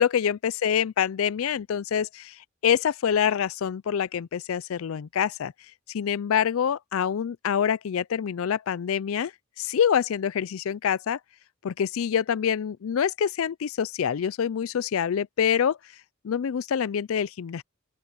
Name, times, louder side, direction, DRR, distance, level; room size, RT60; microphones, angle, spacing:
voice 1, 0.0-2.4 2.6-5.5 5.9-9.3 9.6-11.2 11.6-15.8 16.2-17.6, left 8 dB, 70° left, 0.4 m, -26 dB
open air
head